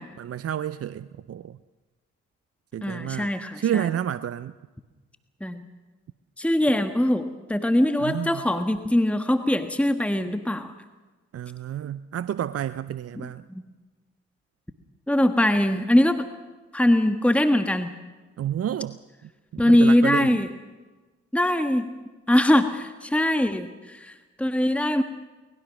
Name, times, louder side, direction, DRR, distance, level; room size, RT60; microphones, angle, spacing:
voice 1, 0.2-1.6 2.7-3.3 3.6-4.5 8.0-8.4 11.3-13.4 18.4-19.0 19.5-20.4, right 10 dB, 50° right, 15 dB, 0.6 m, -30 dB
voice 2, 2.8-3.9 5.4-5.7 6.4-10.7 13.5-13.6 15.1-16.2 16.7-17.9 19.6-20.5 21.3-21.9 22.3-25.0, left 1 dB, 5° left, 8 dB, 1.5 m, -22 dB
23.5 x 20.5 x 6.4 m, 1.3 s
hypercardioid pair, 45°, 31 cm